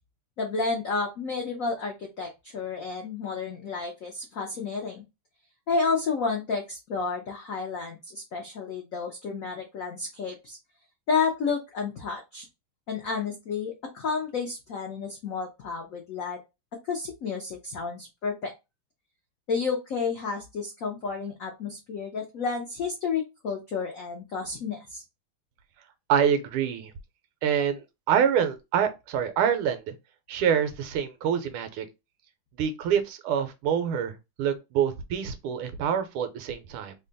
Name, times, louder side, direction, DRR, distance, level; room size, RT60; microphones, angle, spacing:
voice 1, 0.4-5.0 5.7-10.6 11.1-12.5 12.9-16.4 16.9-18.5 19.5-25.0, left 5 dB, 85° left, 0.7 m, -31 dB
voice 2, 26.1-26.9 27.4-29.9 30.3-31.8 32.6-36.9, right 8 dB, 90° right, 1.5 m, -26 dB
3.5 x 2.3 x 3.8 m
omnidirectional pair, 2.4 m